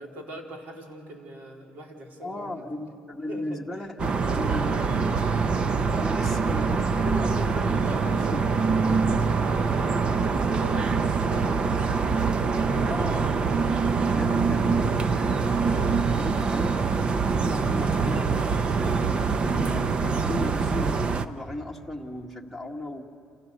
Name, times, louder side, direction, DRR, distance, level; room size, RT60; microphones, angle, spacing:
voice 1, 0.0-2.6 3.3-3.9 7.8-10.0 10.4-11.6 19.1-19.3, right 1 dB, 55° right, 0 dB, 4.2 m, -42 dB
voice 2, 2.2-5.2 5.9-8.4 11.6-11.7 12.9-16.8 17.2-18.3 18.7-23.0, left 1 dB, 5° right, 2 dB, 1.8 m, -36 dB
sound 1, 4.0-21.3, right 5 dB, 30° right, 0.8 m, -24 dB
28.5 x 28.0 x 6.8 m, 2.8 s
cardioid pair, 155°, 3 cm